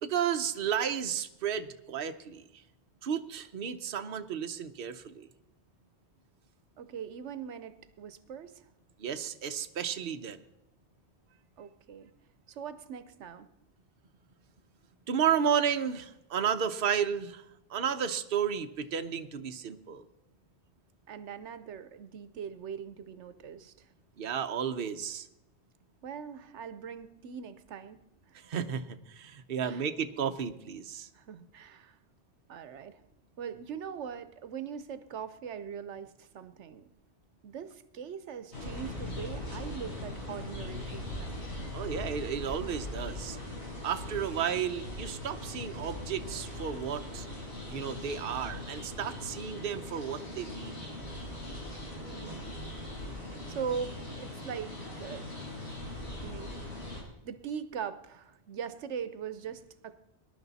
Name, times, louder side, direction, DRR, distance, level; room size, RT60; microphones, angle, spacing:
voice 1, 0.0-2.4 3.0-5.3 9.0-10.4 15.1-17.4 17.7-20.0 24.2-25.3 28.3-31.1 41.7-43.4 43.8-47.3 47.7-50.7, right 8 dB, 55° right, 7 dB, 1.0 m, -32 dB
voice 2, 6.8-8.7 11.6-12.1 12.5-13.5 21.1-23.9 26.0-28.0 28.3-28.4 29.6-29.9 31.1-32.0 32.5-33.0 33.4-36.9 37.4-41.4 52.1-52.6 53.5-55.3 56.2-56.6 57.2-59.9, right 7 dB, 80° right, 12 dB, 1.1 m, -41 dB
sound 1, 38.5-57.0, left 1 dB, 70° left, 4.8 m, -40 dB
21.0 x 11.0 x 4.1 m, 0.88 s
omnidirectional pair, 1.2 m